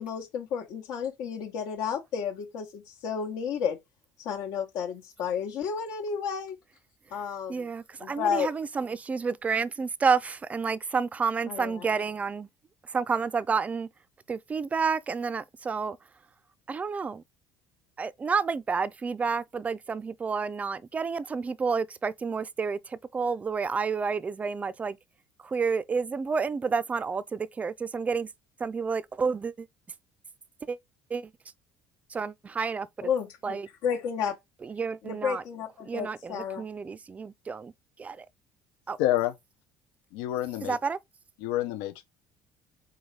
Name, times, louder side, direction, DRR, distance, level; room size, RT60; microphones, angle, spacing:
voice 1, 0.0-3.8 4.2-6.6 7.1-7.6 8.0-8.5 11.5-11.8 33.0-34.3 35.0-36.6, left 7 dB, 75° left, 1.1 m, -32 dB
voice 2, 7.5-12.5 12.8-13.9 14.3-16.0 16.7-17.2 18.0-25.0 25.4-28.3 28.6-29.7 30.6-30.8 31.1-31.3 32.1-33.1 33.4-33.7 34.6-35.4 35.9-37.7 38.0-38.3 38.9-39.0 40.6-41.0, right 5 dB, 20° right, 0.4 m, -30 dB
voice 3, 39.0-39.3 40.1-40.8 41.4-42.0, left 14 dB, 90° left, 0.6 m, -28 dB
3.9 x 3.8 x 3.2 m
cardioid pair, 120°, 7 cm